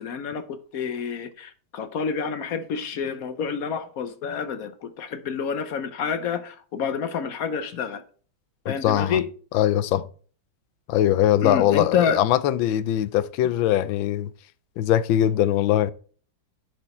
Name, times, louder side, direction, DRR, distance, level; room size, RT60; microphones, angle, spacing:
voice 1, 0.0-8.0 8.7-9.3 11.4-12.2, left 6 dB, 60° left, 1.0 m, -28 dB
voice 2, 8.6-9.2 9.5-10.1 10.9-14.3 14.8-15.9, left 12 dB, 80° left, 1.4 m, -21 dB
10.5 x 5.0 x 4.2 m
omnidirectional pair, 2.1 m